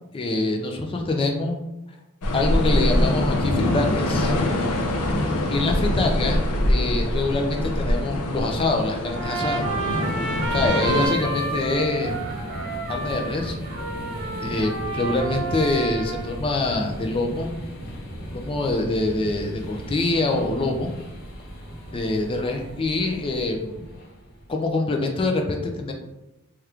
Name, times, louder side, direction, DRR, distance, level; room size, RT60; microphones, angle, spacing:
voice 1, 0.1-1.6 2.3-4.4 5.5-9.7 10.5-12.1 12.9-13.6 14.4-17.5 18.3-20.9 21.9-23.9 24.5-25.9, left 2 dB, 25° left, 2 dB, 0.4 m, -25 dB
sound 1, 2.2-11.1, left 1 dB, 75° left, 0.5 m, -24 dB
sound 2, 5.6-24.7, equal, 45° left, 0.7 m, -37 dB
Trumpet, 9.0-16.4, right 3 dB, 55° right, 0.6 m, -30 dB
2.9 x 2.4 x 3.3 m, 0.98 s
head